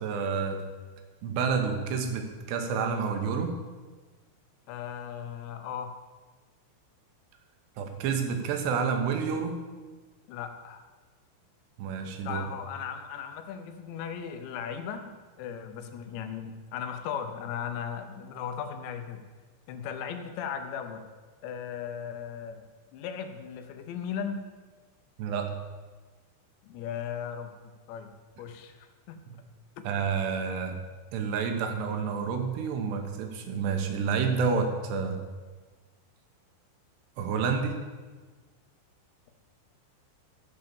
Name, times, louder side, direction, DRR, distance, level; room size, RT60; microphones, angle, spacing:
voice 1, 0.0-0.6 1.2-3.5 7.8-9.6 11.8-12.4 25.2-25.5 29.8-30.8 31.1-35.2 37.2-37.7, right 5 dB, 70° right, 5 dB, 3.0 m, -29 dB
voice 2, 4.7-5.9 10.3-10.8 12.2-15.1 15.4-19.2 19.7-21.0 21.4-22.6 22.9-24.4 26.6-28.1 28.4-29.2, left 8 dB, 75° left, 7 dB, 2.8 m, -37 dB
15.0 x 5.4 x 7.1 m, 1.4 s
omnidirectional pair, 5.7 m